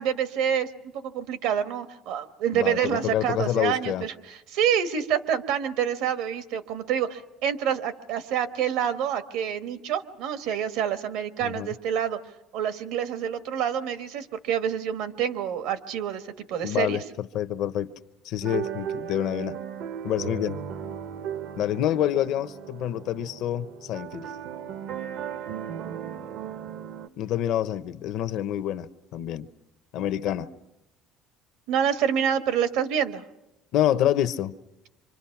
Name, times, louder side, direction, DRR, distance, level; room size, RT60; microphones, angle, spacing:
voice 1, 0.0-12.2 12.5-16.2 16.5-17.0 31.7-33.2, right 8 dB, 80° right, 1.4 m, -27 dB
voice 2, 2.5-4.0 11.4-11.7 16.6-17.9 18.2-19.6 20.0-20.6 21.6-24.3 27.2-29.5 29.9-30.5 33.7-34.5, left 11 dB, 70° left, 0.8 m, -27 dB
sound 1, 18.4-27.1, right 8 dB, 65° right, 0.7 m, -36 dB
26.0 x 25.0 x 5.9 m
cardioid pair, 130°, 0 cm